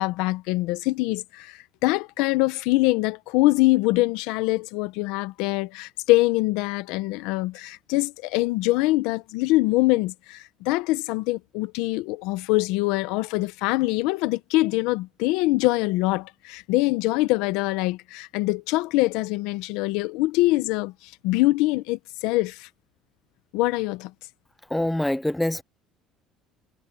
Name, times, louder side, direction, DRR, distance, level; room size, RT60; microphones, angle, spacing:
voice 1, 0.0-22.7 23.5-24.1, left 20 dB, 85° left, 0.9 m, -24 dB
voice 2, 24.7-25.6, left 1 dB, 5° left, 0.5 m, -24 dB
cardioid pair, 150°, 0 cm